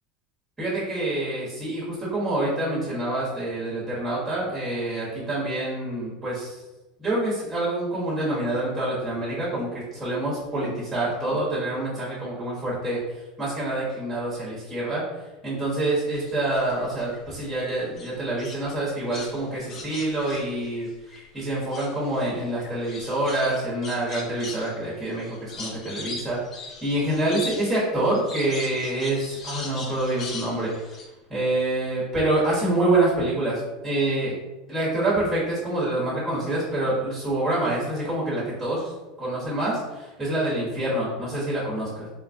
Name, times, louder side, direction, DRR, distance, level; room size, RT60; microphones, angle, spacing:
voice 1, 0.6-6.6 7.0-13.0 13.4-15.0 15.4-20.9 21.3-30.7 31.3-34.3 34.7-38.9 39.2-42.1, right 1 dB, 10° right, -8 dB, 1.2 m, -26 dB
sound 1, 16.1-17.5 18.0-21.2 21.5-31.1, left 3 dB, 30° left, 0.4 m, -40 dB
4.0 x 2.3 x 2.6 m, 1.1 s
supercardioid pair, 155°, 0 cm